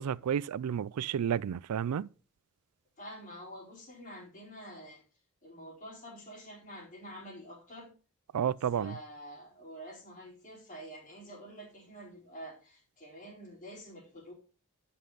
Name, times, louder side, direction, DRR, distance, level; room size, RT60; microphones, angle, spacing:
voice 1, 0.0-2.1 8.3-9.0, right 8 dB, 85° right, 0.4 m, -31 dB
voice 2, 3.0-5.0 5.4-7.9 8.7-14.3, equal, 35° left, 4.2 m, -47 dB
11.5 x 5.4 x 3.9 m
head